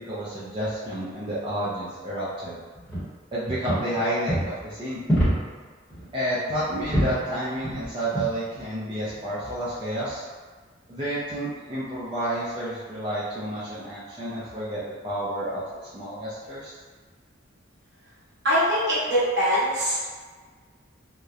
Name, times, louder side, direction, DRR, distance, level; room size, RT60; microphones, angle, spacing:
voice 1, 0.0-2.6 3.3-5.0 6.1-10.2 10.9-15.6 15.9-16.8, right 1 dB, 25° right, -11 dB, 0.4 m, -30 dB
sound 1, 2.8-3.0 3.5-4.0 4.3-4.5 5.1-5.6 5.9-6.1 6.5-7.2 7.6-7.9 8.1-8.3 9.1-9.3, equal, 5° left, 0.9 m, -26 dB
voice 2, 18.4-20.0, equal, 55° right, -9 dB, 0.9 m, -22 dB
2.8 x 2.0 x 2.4 m, 1.4 s
head